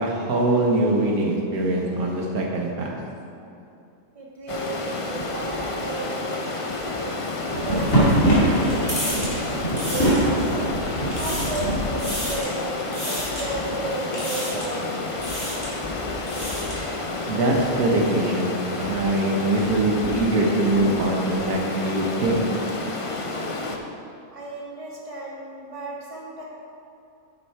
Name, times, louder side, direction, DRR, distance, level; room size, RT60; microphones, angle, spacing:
voice 1, 0.0-2.9 17.3-22.4, right 2 dB, 90° right, -1 dB, 1.6 m, -23 dB
voice 2, 4.1-10.7 11.1-15.0 24.3-26.4, right 2 dB, 25° right, -5 dB, 1.7 m, -34 dB
Stream, 4.5-23.8, left 3 dB, 40° left, 0.4 m, -30 dB
sound 1, 7.4-12.4, right 1 dB, 60° left, 2.9 m, -23 dB
sound 2, 7.6-10.6 11.0-11.7 12.0-12.6 12.9-13.5 14.1-14.8 15.1-15.7 16.1-16.9, equal, 15° left, 2.5 m, -33 dB
10.0 x 6.6 x 4.6 m, 2.7 s
omnidirectional pair, 1.5 m